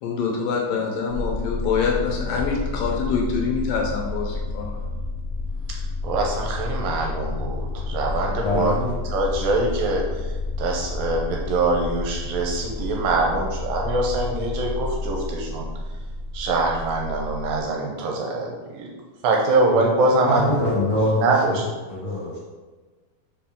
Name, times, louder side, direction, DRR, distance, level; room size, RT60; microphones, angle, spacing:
voice 1, 0.0-4.8, left 5 dB, 75° left, 0 dB, 2.3 m, -25 dB
sound 1, 1.1-17.6, left 3 dB, 60° right, 0.7 m, -30 dB
voice 2, 6.0-8.7 9.1-10.3 10.6-15.7 16.3-18.9 19.2-20.5 21.2-21.7, right 2 dB, 80° right, 0 dB, 2.2 m, -23 dB
voice 3, 8.4-8.9 9.3-9.4 19.7-19.8 20.2-21.6 21.9-22.4, left 1 dB, 60° left, -6 dB, 1.9 m, -24 dB
5.1 x 5.1 x 3.6 m, 1.3 s
omnidirectional pair, 4.4 m